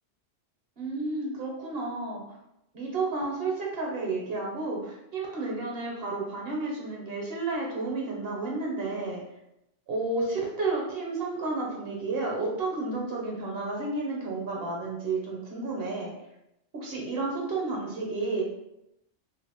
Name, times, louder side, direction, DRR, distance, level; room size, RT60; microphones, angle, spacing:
voice 1, 0.8-2.2 2.7-9.2 9.9-16.1 16.7-18.4, right 3 dB, 60° right, -2 dB, 0.9 m, -31 dB
2.6 x 2.5 x 2.8 m, 0.83 s
omnidirectional pair, 1.3 m